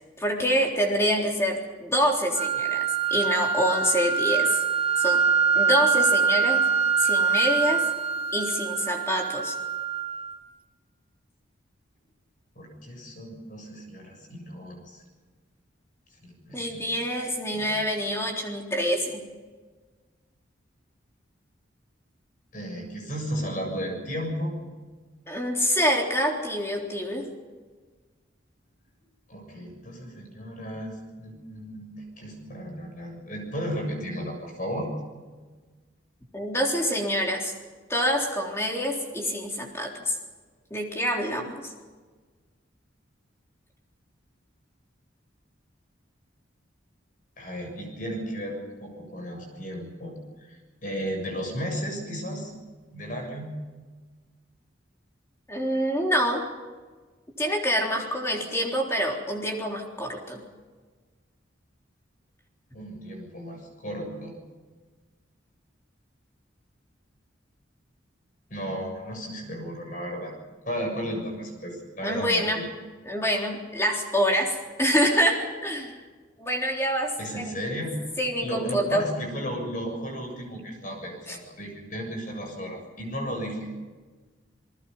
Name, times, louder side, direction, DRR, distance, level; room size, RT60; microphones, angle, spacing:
voice 1, 0.2-4.6 5.0-5.2 5.5-6.6 7.0-7.8 8.3-9.6 16.5-19.2 25.3-27.2 36.3-37.5 37.9-40.2 40.7-41.7 55.5-56.4 57.4-60.4 72.0-72.6 73.1-76.0 76.4-77.6 78.2-79.1 81.3-81.4, equal, 15° left, 0 dB, 3.7 m, -26 dB
sound 1, 2.3-10.4, right 6 dB, 25° right, 1.6 m, -24 dB
voice 2, 12.6-15.0 16.2-16.9 17.5-17.7 22.5-24.5 29.3-34.9 47.4-50.1 50.4-52.5 52.9-53.5 62.7-64.3 68.5-70.3 70.7-72.6 77.2-78.0 78.4-83.9, equal, 40° left, 3 dB, 7.2 m, -34 dB
29.0 x 20.0 x 5.6 m, 1.4 s
head